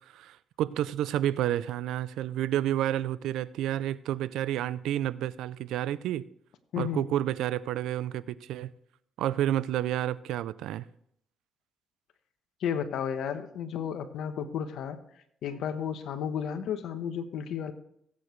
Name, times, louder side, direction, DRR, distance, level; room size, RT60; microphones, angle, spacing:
voice 1, 0.1-6.2 6.8-8.7 9.2-10.8, right 12 dB, 85° right, 0.4 m, -30 dB
voice 2, 6.7-7.1 12.6-15.0 15.4-17.7, left 8 dB, 75° left, 1.1 m, -33 dB
18.0 x 8.5 x 3.2 m
cardioid pair, 90°, 0 cm